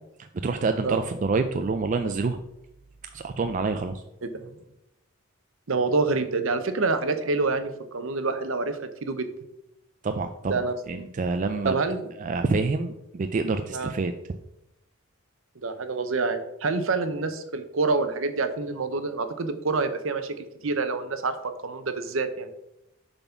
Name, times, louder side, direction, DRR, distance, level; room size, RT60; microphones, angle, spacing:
voice 1, 0.2-2.4 3.1-4.0 10.0-11.8 12.2-14.1, right 3 dB, 35° right, 7 dB, 0.3 m, -27 dB
voice 2, 5.7-9.3 10.5-10.7 11.6-12.1 13.7-13.9 15.6-22.5, right 3 dB, 65° right, 10 dB, 0.8 m, -27 dB
6.9 x 4.1 x 5.8 m, 0.86 s
head